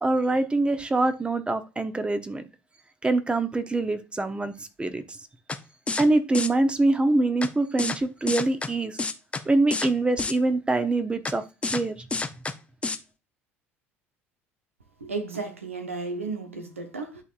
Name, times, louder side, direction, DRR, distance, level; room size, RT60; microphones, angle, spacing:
voice 1, 0.0-2.4 3.0-5.2 6.0-9.0 9.4-12.0, right 2 dB, 15° right, 1.0 m, -24 dB
sound 1, 5.5-5.6 5.9-6.1 6.3-6.5 7.4-7.5 7.8-8.0 8.3-8.7 9.0-9.4 9.7-9.9 10.2-10.3 11.3-11.4 11.6-11.8 12.1-12.5 12.8-13.0, left 3 dB, 15° left, 0.7 m, -28 dB
voice 2, 15.0-17.2, right 3 dB, 90° right, 1.1 m, -33 dB
11.0 x 4.1 x 2.5 m
figure-of-eight pair, 65°, 7 cm